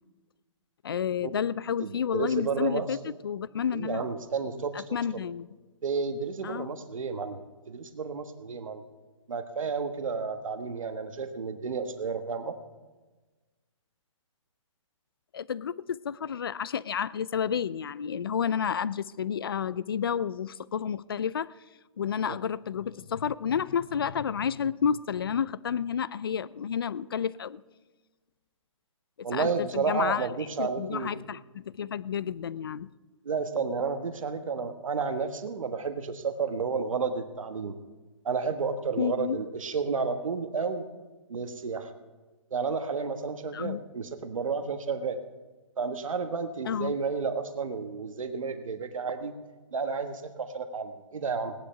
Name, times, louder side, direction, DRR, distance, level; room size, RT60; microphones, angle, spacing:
voice 1, 0.8-4.1 4.7-5.5 6.4-6.7 15.3-21.5 22.0-27.6 29.3-30.3 30.6-32.9 39.0-39.4 43.5-43.8 46.7-47.0, left 7 dB, 45° left, 20 dB, 0.4 m, -30 dB
voice 2, 1.8-2.9 3.7-4.8 5.8-8.8 9.3-12.5 22.3-22.4 29.2-31.1 33.2-37.8 38.2-40.9 41.3-41.9 42.5-45.2 45.8-49.3 49.7-51.5, right 5 dB, 85° right, 8 dB, 1.4 m, -31 dB
18.0 x 10.5 x 5.7 m, 1.2 s
hypercardioid pair, 175°, 17 cm